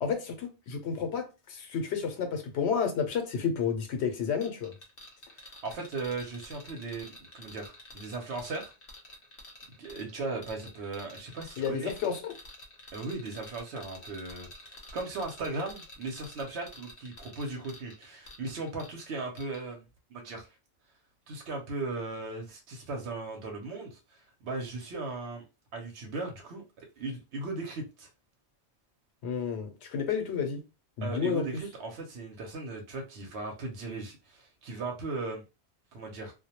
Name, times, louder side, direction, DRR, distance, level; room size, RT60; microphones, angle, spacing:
voice 1, 0.0-4.7 11.6-12.2 29.2-30.6 31.0-31.4, left 6 dB, 85° left, 0.9 m, -31 dB
sound 1, 4.4-19.1 19.4-19.6, left 1 dB, 60° left, 0.9 m, -49 dB
voice 2, 5.3-8.7 9.8-11.9 12.9-19.8 20.1-20.5 21.3-25.4 25.7-26.6 27.0-28.1 31.0-35.4 35.9-36.3, right 3 dB, 80° right, 0.9 m, -37 dB
2.2 x 2.1 x 2.8 m
omnidirectional pair, 1.1 m